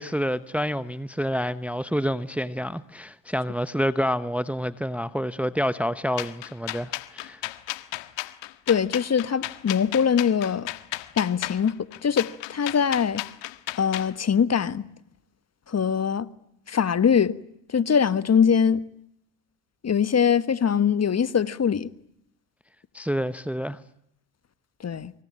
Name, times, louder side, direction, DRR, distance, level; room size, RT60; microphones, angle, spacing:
voice 1, 0.0-7.4 22.9-23.8, equal, 5° right, 1.0 m, -28 dB
sound 1, 6.2-14.1, left 17 dB, 65° left, 1.7 m, -34 dB
voice 2, 8.7-10.7 11.1-11.7 12.0-13.2 13.8-14.9 15.7-16.3 16.7-17.4 17.7-18.8 19.8-21.9 24.8-25.1, left 7 dB, 30° left, 1.5 m, -22 dB
25.5 x 24.5 x 9.0 m
hypercardioid pair, 70°, 48 cm